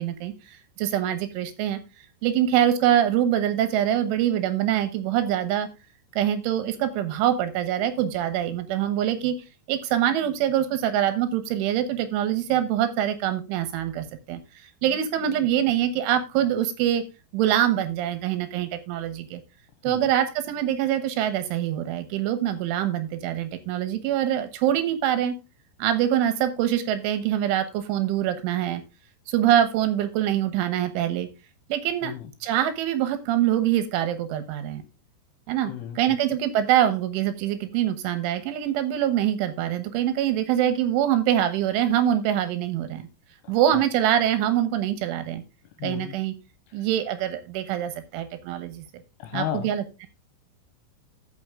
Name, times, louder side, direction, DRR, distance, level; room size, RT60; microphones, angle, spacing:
voice 1, 0.0-1.8 2.2-5.7 6.1-9.4 9.7-17.0 17.3-19.4 19.8-25.4 25.8-28.8 29.3-31.3 31.7-32.1 32.4-34.8 35.5-43.1 43.5-45.4 45.8-46.3 46.7-48.9 49.3-50.1, right 11 dB, 80° right, 3.6 m, -24 dB
voice 2, 35.7-36.2 43.4-43.8 45.8-46.2 46.8-46.9 49.2-49.7, left 11 dB, 75° left, 2.7 m, -34 dB
13.5 x 5.7 x 3.7 m
omnidirectional pair, 5.5 m